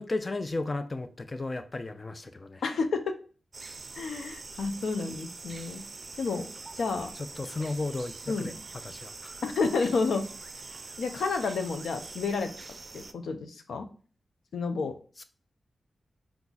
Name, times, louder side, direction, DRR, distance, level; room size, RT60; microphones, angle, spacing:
voice 1, 0.0-2.6 7.1-8.5 8.8-9.4, left 2 dB, 35° left, 11 dB, 0.4 m, -34 dB
voice 2, 2.6-3.1 3.9-5.8 6.2-6.5 6.8-7.1 8.3-8.6 9.4-10.2 11.0-12.5 12.9-13.9 14.5-14.9, left 4 dB, 85° left, 7 dB, 0.5 m, -30 dB
sound 1, 3.5-13.1, right 3 dB, 45° right, 0.4 m, -44 dB
4.7 x 2.3 x 3.9 m, 0.39 s
cardioid pair, 65°, 0 cm